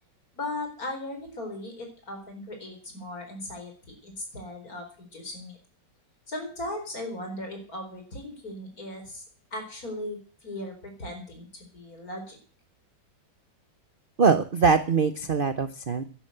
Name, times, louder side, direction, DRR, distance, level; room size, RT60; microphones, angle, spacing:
voice 1, 0.3-5.6 6.3-9.2 9.5-12.4, left 1 dB, 50° left, 3 dB, 4.8 m, -37 dB
voice 2, 14.2-16.0, right 5 dB, 50° right, 11 dB, 0.6 m, -22 dB
11.0 x 11.0 x 7.8 m, 0.41 s
omnidirectional pair, 2.0 m